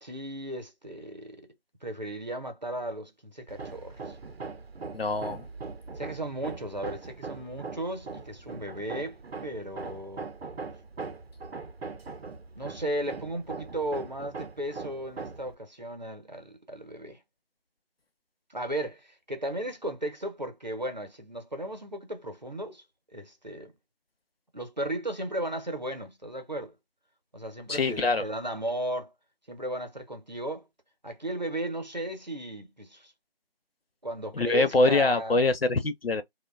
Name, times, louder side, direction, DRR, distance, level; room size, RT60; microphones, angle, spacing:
voice 1, 0.0-1.5 1.8-4.2 6.0-10.3 12.5-17.2 18.5-22.8 23.1-23.7 24.5-26.7 27.3-29.1 29.5-30.6 31.0-33.1 34.0-35.4, right 1 dB, 45° right, 0.7 m, -35 dB
Hammer, 3.5-15.5, right 4 dB, 90° right, 0.6 m, -41 dB
voice 2, 4.9-5.5 27.7-28.2 34.4-36.2, left 3 dB, 75° left, 0.6 m, -24 dB
2.5 x 2.2 x 2.2 m
figure-of-eight pair, 180°, 30 cm